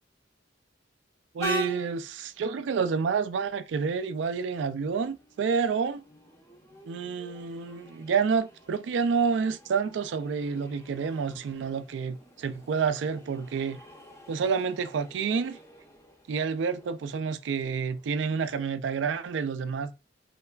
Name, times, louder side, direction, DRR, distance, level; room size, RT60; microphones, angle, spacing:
voice 1, 1.3-6.0 6.8-13.8 14.3-15.6 16.3-19.9, right 5 dB, 70° right, 0.3 m, -29 dB
Train, 1.4-18.7, left 1 dB, 15° left, 0.5 m, -45 dB
3.2 x 2.3 x 2.2 m
head